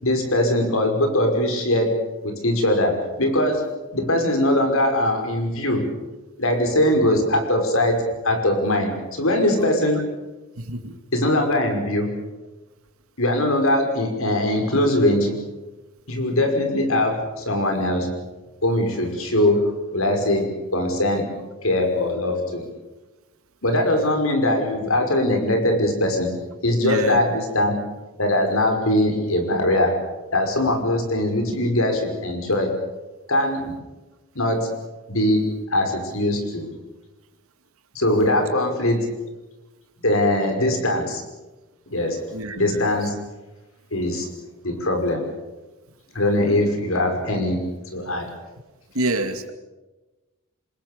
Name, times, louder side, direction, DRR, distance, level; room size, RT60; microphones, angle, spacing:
voice 1, 0.0-2.0 2.2-5.9 6.4-10.1 11.1-12.2 13.2-15.3 16.1-18.1 18.6-21.4 21.6-22.7 23.6-26.4 26.6-27.8 28.2-30.0 30.3-32.8 33.3-33.8 34.4-34.7 35.1-36.7 38.0-39.1 40.0-41.2 41.9-42.2 42.6-43.2 43.9-44.3 44.6-45.3 46.1-47.7 47.9-48.3, left 1 dB, 70° left, 4 dB, 5.6 m, -21 dB
voice 2, 10.6-11.0 26.8-27.4 42.3-42.9 48.9-49.5, right 2 dB, 75° right, 7 dB, 2.5 m, -27 dB
27.0 x 21.0 x 7.1 m, 1.1 s
head